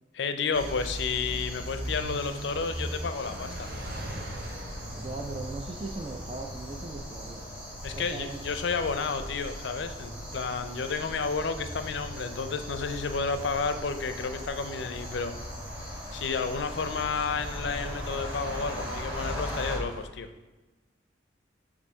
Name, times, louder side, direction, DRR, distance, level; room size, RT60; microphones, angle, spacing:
voice 1, 0.1-3.7 7.8-15.3 16.1-20.3, left 5 dB, 65° left, 9 dB, 0.5 m, -31 dB
sound 1, 0.5-19.8, equal, 10° right, 1.3 m, -40 dB
sound 2, 0.5-20.1, equal, 50° right, 0.9 m, -42 dB
voice 2, 4.9-7.4 8.0-8.6, right 3 dB, 25° right, 2 dB, 0.4 m, -39 dB
6.9 x 2.6 x 5.5 m, 1.1 s
head